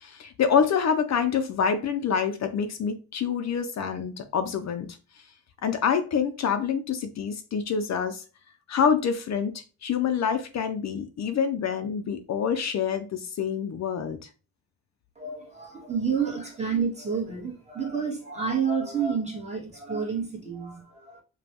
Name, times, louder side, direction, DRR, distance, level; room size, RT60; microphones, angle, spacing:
voice 1, 0.0-4.9 5.6-8.2 8.7-9.5 9.8-14.2, left 7 dB, 55° left, 0.5 m, -26 dB
voice 2, 15.1-21.2, right 6 dB, 20° right, 1.2 m, -29 dB
5.1 x 2.2 x 2.9 m
wide cardioid pair, 150°, 32 cm